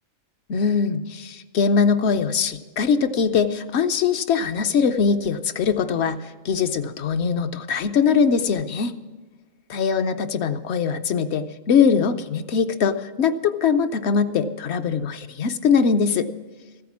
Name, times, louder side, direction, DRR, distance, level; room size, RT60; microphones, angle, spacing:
voice 1, 0.5-9.0 9.7-16.3, left 6 dB, 65° left, 9 dB, 0.8 m, -22 dB
14.5 x 8.5 x 7.2 m, 1.3 s
omnidirectional pair, 1.3 m